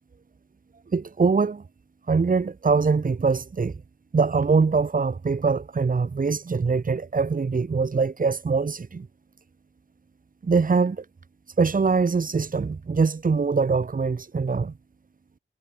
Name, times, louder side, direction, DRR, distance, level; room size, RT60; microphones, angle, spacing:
voice 1, 0.9-1.6 2.1-3.8 4.1-9.1 10.4-11.0 11.6-14.7, right 4 dB, 45° right, 4.7 m, -23 dB
wide cardioid pair, 125°, 20 cm